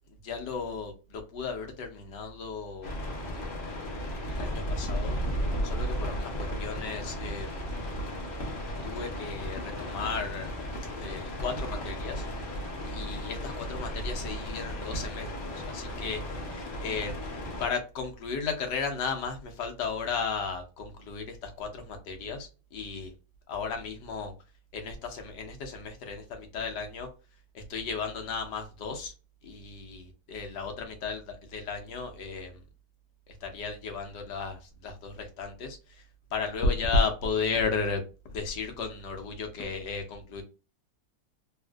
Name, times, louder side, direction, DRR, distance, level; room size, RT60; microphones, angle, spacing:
voice 1, 0.2-2.9 3.2-3.6 4.2-5.2 5.6-7.6 8.8-12.2 12.8-15.3 15.7-16.2 16.5-17.2 17.6-23.1 23.5-24.3 24.7-27.1 27.5-29.1 29.4-32.5 33.3-36.0 36.3-40.4, left 4 dB, 75° left, 4 dB, 1.3 m, -34 dB
sound 1, 2.8-17.7, equal, 45° left, 0.7 m, -34 dB
3.6 x 2.4 x 2.2 m, 0.32 s
omnidirectional pair, 1.9 m